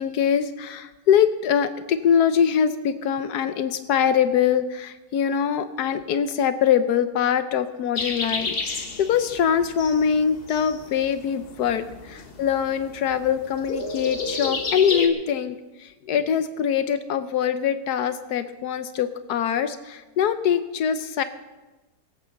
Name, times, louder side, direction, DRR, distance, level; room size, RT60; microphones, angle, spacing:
voice 1, 0.0-21.2, left 8 dB, 80° left, 11 dB, 1.3 m, -23 dB
sound 1, 8.0-15.1, left 3 dB, 40° left, 1.5 m, -32 dB
19.5 x 8.4 x 6.4 m, 1.1 s
omnidirectional pair, 1.7 m